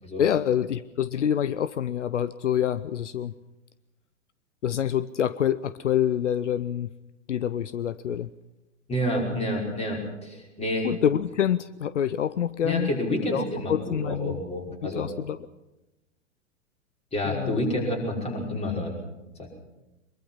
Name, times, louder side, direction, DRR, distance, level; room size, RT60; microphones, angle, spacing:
voice 1, 0.2-3.3 4.6-6.9 7.3-8.3 10.8-12.9 13.3-14.4 14.8-15.4 17.3-17.6, left 9 dB, 70° left, 16 dB, 0.7 m, -26 dB
voice 2, 8.9-10.9 12.6-15.1 17.1-19.0 19.4-19.5, left 1 dB, 15° left, 0 dB, 5.5 m, -29 dB
23.5 x 22.5 x 5.8 m, 0.99 s
figure-of-eight pair, 105°, 38 cm